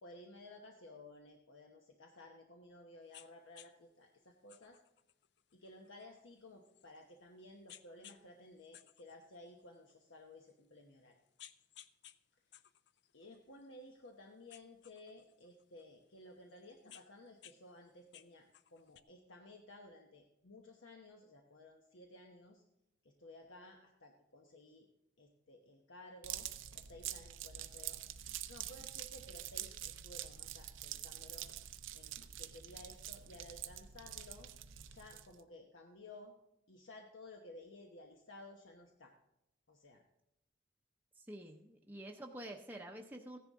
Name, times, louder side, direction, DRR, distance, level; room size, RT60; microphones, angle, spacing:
voice 1, 0.0-4.8 5.5-11.2 13.1-22.6 23.0-24.9 25.2-26.5 26.7-28.0 28.5-31.5 31.9-34.5 34.9-36.3 36.7-39.1 39.7-40.0, left 2 dB, 80° left, 2 dB, 1.0 m, -56 dB
sound 1, 3.1-3.3 3.5-3.7 4.5-7.2 7.7-8.2 8.6-9.9 10.5-10.6 11.1-12.2 12.5-14.1 14.5-15.8 16.5-17.6 17.9-19.0, left 11 dB, 60° left, 0.5 m, -59 dB
sound 2, 26.2-35.4, right 11 dB, 80° right, 0.6 m, -46 dB
voice 2, 41.2-43.4, right 1 dB, 10° right, 1 dB, 0.6 m, -48 dB
15.5 x 10.5 x 3.6 m, 0.87 s
head